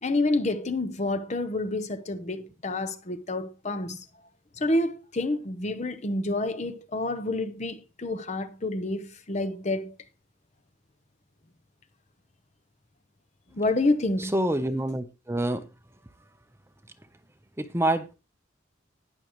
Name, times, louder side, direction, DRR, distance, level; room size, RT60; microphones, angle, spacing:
voice 1, 0.0-4.0 4.6-9.9 13.5-14.3, left 2 dB, 35° left, 0.9 m, -28 dB
voice 2, 14.2-15.6 17.6-18.1, right 1 dB, 15° right, 0.8 m, -27 dB
19.5 x 6.5 x 3.1 m
head